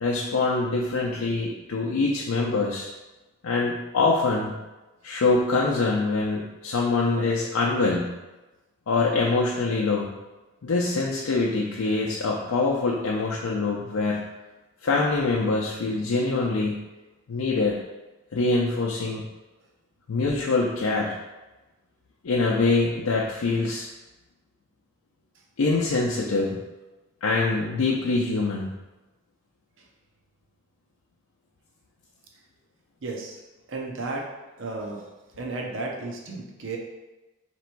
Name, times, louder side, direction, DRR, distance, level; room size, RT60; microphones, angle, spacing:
voice 1, 0.0-2.9 3.4-4.5 5.0-8.2 8.9-10.1 10.6-14.3 14.8-16.8 17.3-17.8 18.3-19.2 20.1-21.1 22.2-23.9 25.6-26.6 27.2-28.7, left 3 dB, 85° left, -2 dB, 0.5 m, -24 dB
voice 2, 33.0-33.4 33.7-34.3 34.6-35.0 35.4-36.8, right 3 dB, 60° right, 0 dB, 0.6 m, -33 dB
3.4 x 3.0 x 4.4 m, 1.1 s
head